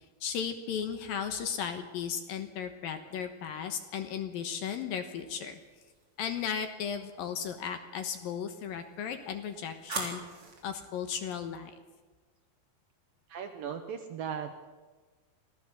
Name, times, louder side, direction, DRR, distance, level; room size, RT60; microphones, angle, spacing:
voice 1, 0.2-5.6 6.2-10.2 10.6-11.7, left 7 dB, 65° left, 8 dB, 2.5 m, -35 dB
sound 1, 5.5-6.2 8.6-10.7, right 3 dB, 30° right, 4.2 m, -42 dB
voice 2, 13.3-14.7, right 7 dB, 70° right, 6 dB, 2.3 m, -38 dB
25.5 x 16.0 x 7.0 m, 1.3 s
omnidirectional pair, 5.2 m